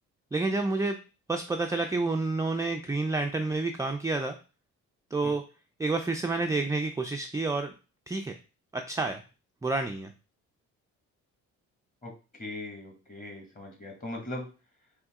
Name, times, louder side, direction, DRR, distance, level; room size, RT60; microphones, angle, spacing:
voice 1, 0.3-1.0 1.3-4.4 5.1-5.4 5.8-7.7 8.1-8.3 8.7-9.2 9.6-10.1, right 3 dB, 10° right, 4 dB, 0.4 m, -29 dB
voice 2, 12.4-14.5, left 1 dB, 25° left, 1 dB, 1.8 m, -39 dB
4.0 x 2.9 x 3.6 m, 0.33 s
cardioid pair, 90°, 30 cm